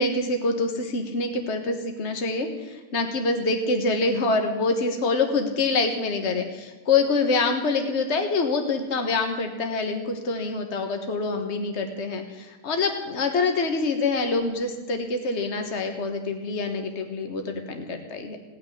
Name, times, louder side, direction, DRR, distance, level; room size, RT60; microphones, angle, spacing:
voice 1, 0.0-18.4, left 3 dB, 50° left, 5 dB, 1.6 m, -26 dB
17.5 x 6.7 x 9.9 m, 1.2 s
omnidirectional pair, 1.5 m